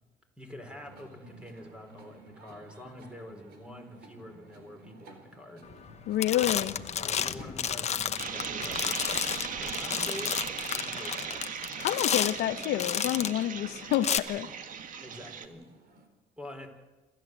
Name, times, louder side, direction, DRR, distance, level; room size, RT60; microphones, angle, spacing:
voice 1, 0.4-5.6 6.9-9.0 9.6-10.4 10.7-11.4 14.9-15.7 16.4-16.7, left 1 dB, 5° right, 4.8 m, -46 dB
sound 1, 0.6-16.1, right 2 dB, 70° right, 4.3 m, -53 dB
sound 2, 5.7-5.9 6.2-13.4 13.9-14.2, left 8 dB, 40° left, 1.0 m, -31 dB
voice 2, 6.1-6.8 11.8-14.5, left 13 dB, 75° left, 0.9 m, -28 dB
sound 3, 8.2-15.5, right 7 dB, 50° right, 1.8 m, -38 dB
27.0 x 13.5 x 8.0 m
cardioid pair, 110°, 17 cm